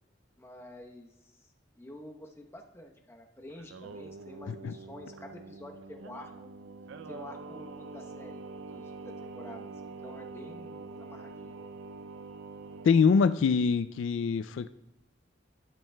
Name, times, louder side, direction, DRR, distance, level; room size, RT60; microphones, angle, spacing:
voice 1, 0.4-1.5 1.8-6.5 7.1-8.4 8.7-11.6, left 1 dB, 15° left, 2 dB, 0.9 m, -49 dB
Singing, 3.5-13.3, right 3 dB, 80° right, 0.4 m, -45 dB
voice 2, 12.8-14.7, left 5 dB, 80° left, 12 dB, 0.3 m, -24 dB
12.0 x 10.0 x 2.2 m, 0.87 s
head